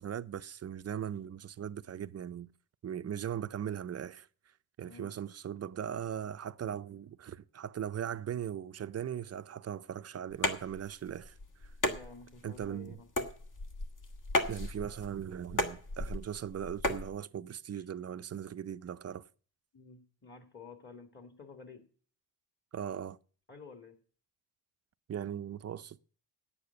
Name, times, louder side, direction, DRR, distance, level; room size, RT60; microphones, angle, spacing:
voice 1, 0.0-2.5 2.8-4.3 4.8-11.7 12.4-13.0 14.5-19.3 22.7-23.2 25.1-26.0, right 9 dB, 35° right, 0.5 m, -39 dB
voice 2, 4.8-5.1 11.8-13.1 17.7-17.9 19.7-21.8 23.5-24.0, left 4 dB, 25° left, 2.0 m, -51 dB
sound 1, 10.3-17.1, left 2 dB, 45° left, 1.9 m, -35 dB
9.7 x 8.6 x 8.0 m
cardioid pair, 100°, 44 cm